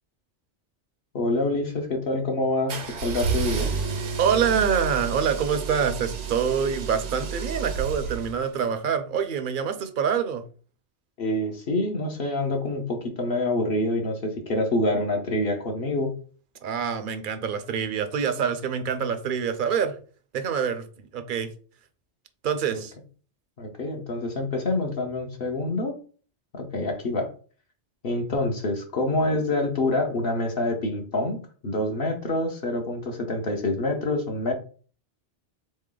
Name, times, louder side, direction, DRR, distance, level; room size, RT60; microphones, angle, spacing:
voice 1, 1.1-3.7 11.2-16.1 22.7-22.8 23.6-25.9 26.5-27.3 28.0-34.5, left 2 dB, 60° left, 3 dB, 1.0 m, -26 dB
sound 1, 2.7-8.7, right 5 dB, 85° right, 1.1 m, -31 dB
voice 2, 4.2-10.4 16.6-20.0 20.3-21.5 22.4-22.9, right 7 dB, 55° right, 9 dB, 0.6 m, -26 dB
3.9 x 3.2 x 3.7 m, 0.41 s
omnidirectional pair, 1.2 m